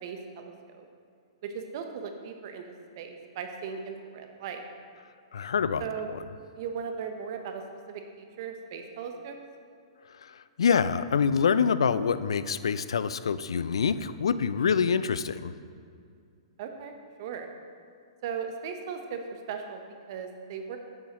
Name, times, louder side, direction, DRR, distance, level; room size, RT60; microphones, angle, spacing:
voice 1, 0.0-0.9 1.4-2.6 3.0-4.6 5.8-6.1 6.6-7.6 7.9-9.4 16.6-16.9 17.2-17.5 18.2-19.8 20.1-20.8, right 6 dB, 55° right, 5 dB, 0.9 m, -37 dB
voice 2, 5.3-5.8 10.6-15.5, left 6 dB, 75° left, 14 dB, 0.3 m, -25 dB
9.6 x 7.1 x 3.0 m, 2.3 s
hypercardioid pair, 115°, 3 cm